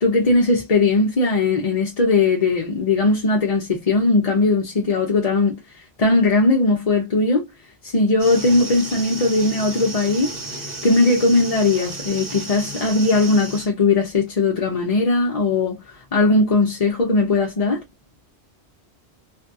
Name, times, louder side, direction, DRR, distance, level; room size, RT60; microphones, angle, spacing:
voice 1, 0.0-7.5 7.8-10.4 10.8-15.8 16.1-17.8, left 3 dB, 40° left, 0.6 m, -19 dB
sound 1, 8.2-13.7, right 2 dB, 50° right, 1.4 m, -33 dB
2.6 x 2.2 x 2.5 m
omnidirectional pair, 1.1 m